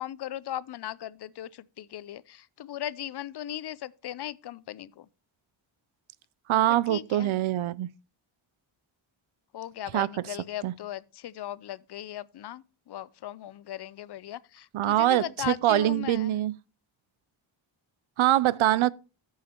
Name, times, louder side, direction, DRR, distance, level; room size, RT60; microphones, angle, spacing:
voice 1, 0.0-5.1 6.7-7.4 9.5-16.4, left 12 dB, 55° left, 0.5 m, -38 dB
voice 2, 6.5-7.9 9.9-10.1 10.6-10.7 14.7-16.5 18.2-18.9, right 14 dB, 75° right, 0.5 m, -24 dB
13.5 x 5.6 x 2.9 m
wide cardioid pair, 150°, 48 cm